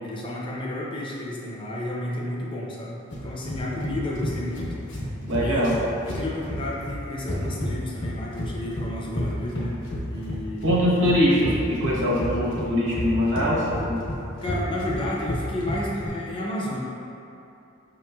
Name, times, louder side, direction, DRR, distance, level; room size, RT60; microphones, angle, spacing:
voice 1, 0.0-4.7 5.4-5.7 6.1-10.7 14.4-16.8, left 1 dB, 25° left, -4 dB, 0.5 m, -31 dB
sound 1, 3.1-16.1, left 1 dB, 65° left, 0.9 m, -31 dB
voice 2, 5.2-5.8 10.6-14.0, equal, 70° right, -6 dB, 0.9 m, -22 dB
5.5 x 3.1 x 2.2 m, 2.8 s
head